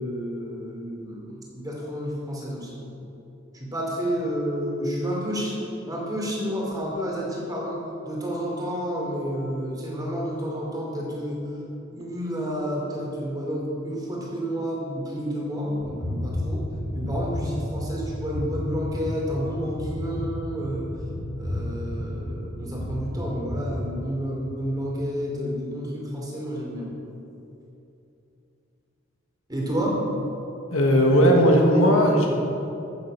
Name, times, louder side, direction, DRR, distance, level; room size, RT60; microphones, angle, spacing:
voice 1, 0.0-2.8 3.5-5.6 5.9-11.5 11.9-16.7 16.9-20.9 21.4-26.9 29.5-30.0 31.1-31.2, equal, 20° right, -3 dB, 2.9 m, -30 dB
sound 1, 15.8-23.9, left 1 dB, 35° left, 3.2 m, -32 dB
voice 2, 30.7-32.3, equal, 85° left, 0 dB, 1.6 m, -17 dB
14.0 x 7.7 x 5.6 m, 2.7 s
head